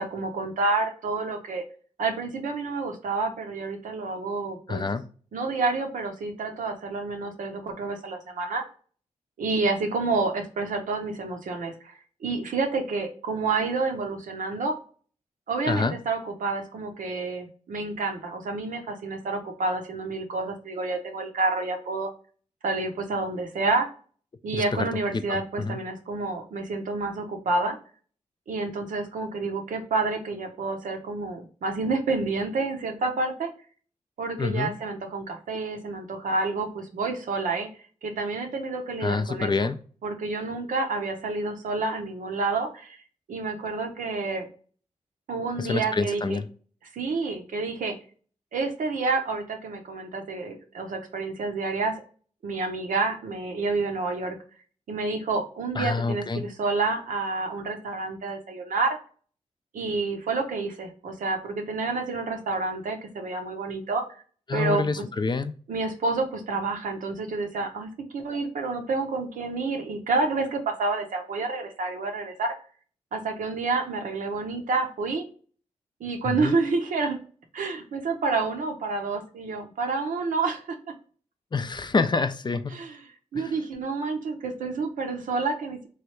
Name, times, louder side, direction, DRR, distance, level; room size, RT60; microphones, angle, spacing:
voice 1, 0.0-1.6 2.0-4.8 5.3-8.6 9.4-11.9 12.2-14.8 15.5-22.1 22.6-23.9 24.4-27.8 28.5-33.5 34.2-37.7 38.0-39.5 40.0-43.0 43.3-44.5 45.3-46.4 46.9-48.0 48.5-51.9 52.4-54.4 54.9-59.0 59.7-64.0 64.5-65.0 65.7-72.6 73.1-75.2 76.0-77.2 77.5-80.6 82.7-83.0 83.3-85.9, right 3 dB, 85° right, 4 dB, 0.7 m, -29 dB
voice 2, 4.7-5.1 15.7-16.0 24.5-25.8 34.4-34.7 39.0-39.8 45.6-46.5 55.7-56.5 64.5-65.5 76.2-76.6 81.5-82.8 83.4-83.6, left 4 dB, 35° left, 11 dB, 0.4 m, -27 dB
3.1 x 2.3 x 3.0 m, 0.41 s
cardioid pair, 50°, 13 cm